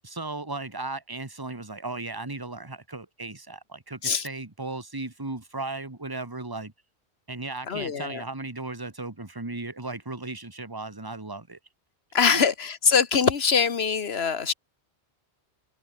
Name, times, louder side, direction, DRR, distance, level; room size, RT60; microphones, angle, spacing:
voice 1, 0.0-6.7 7.3-11.6 12.3-12.4, right 2 dB, 20° right, 1.9 m, -36 dB
voice 2, 7.6-8.2 12.1-14.5, left 6 dB, 65° left, 1.7 m, -23 dB
omnidirectional pair, 1.1 m